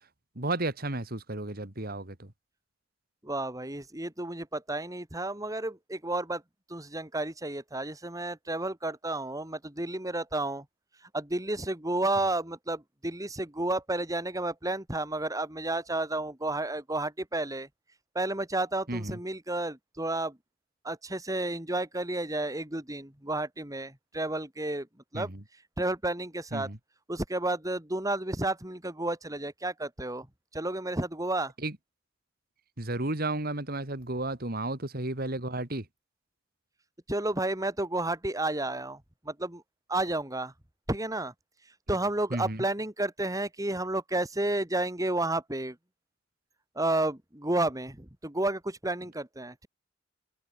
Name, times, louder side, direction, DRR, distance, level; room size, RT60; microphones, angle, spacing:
voice 1, 0.4-2.3 18.9-19.2 25.1-25.4 26.5-26.8 31.6-31.7 32.8-35.9 42.3-42.6, right 2 dB, 50° right, 2.9 m, -33 dB
voice 2, 3.2-6.4 6.7-10.6 11.1-17.7 18.1-20.4 20.8-24.9 25.1-25.3 25.8-26.7 27.1-30.3 30.5-31.5 37.1-39.6 39.9-40.5 40.9-41.3 41.9-45.8 46.7-49.7, right 2 dB, 20° right, 2.9 m, -31 dB
head